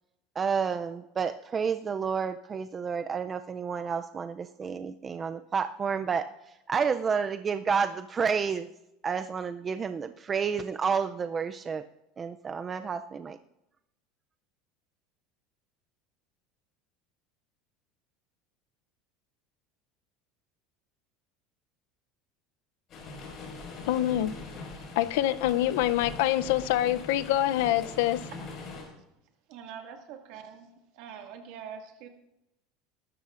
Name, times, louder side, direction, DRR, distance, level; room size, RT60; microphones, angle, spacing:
voice 1, 0.4-6.3 6.7-8.7 9.0-11.8 12.2-13.4, right 6 dB, 20° right, 0.4 m, -30 dB
sound 1, 22.9-28.8, left 3 dB, 40° left, 5.2 m, -42 dB
voice 2, 23.9-24.3 25.0-28.2, left 13 dB, 80° left, 0.5 m, -25 dB
voice 3, 29.5-30.7 30.9-32.1, right 7 dB, 65° right, 2.0 m, -44 dB
20.0 x 12.5 x 2.5 m
cardioid pair, 150°, 0 cm